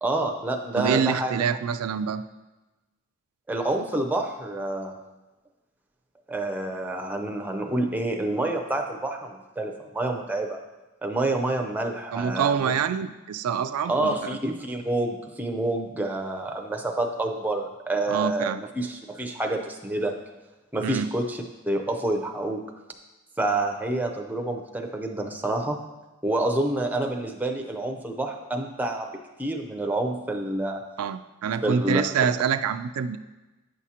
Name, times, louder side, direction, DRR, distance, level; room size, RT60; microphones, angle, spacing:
voice 1, 0.0-1.4 3.5-5.0 6.3-10.6 11.0-12.7 13.8-20.2 20.7-22.6 23.4-25.8 26.2-30.8 31.6-32.0, right 2 dB, 10° right, 3 dB, 0.5 m, -28 dB
voice 2, 0.7-2.2 12.1-14.4 18.1-18.6 20.8-21.1 31.0-33.2, right 7 dB, 80° right, 10 dB, 0.3 m, -26 dB
9.0 x 6.1 x 2.8 m, 1.1 s
head